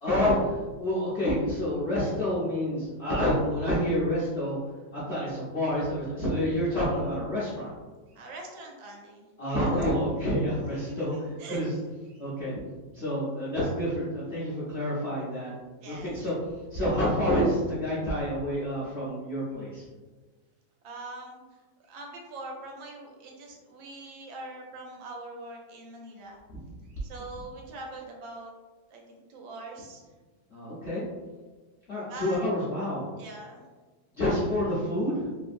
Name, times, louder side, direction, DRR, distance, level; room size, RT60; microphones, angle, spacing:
voice 1, 0.0-4.6 4.9-7.7 9.4-11.1 11.5-11.7 12.2-12.6 12.9-15.5 15.8-16.3 16.7-19.9 30.5-31.0 31.9-33.0 34.1-35.3, equal, 55° left, -9 dB, 0.7 m, -28 dB
voice 2, 8.1-9.6 10.5-11.7 12.1-12.2 15.8-16.1 20.8-26.4 26.8-28.5 28.9-30.1 32.0-32.4 33.2-33.6, right 2 dB, 85° right, 0 dB, 1.4 m, -43 dB
3.2 x 2.6 x 2.5 m, 1.3 s
omnidirectional pair, 2.0 m